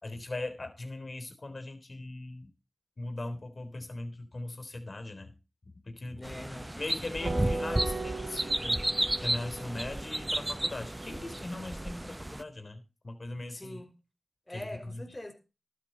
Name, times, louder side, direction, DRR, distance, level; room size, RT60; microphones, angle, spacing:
voice 1, 0.0-2.5 3.0-5.3 5.9-6.2 6.8-8.9 9.2-13.8 14.5-14.6 14.9-15.0, left 2 dB, 50° left, 3.6 m, -39 dB
voice 2, 6.2-6.7 13.5-13.9 14.5-15.3, left 1 dB, 20° left, 3.8 m, -43 dB
sound 1, 6.2-12.4, right 1 dB, 20° right, 0.6 m, -33 dB
sound 2, 7.2-11.9, right 2 dB, 50° right, 5.0 m, -39 dB
13.0 x 11.5 x 4.0 m
cardioid pair, 45°, 0 cm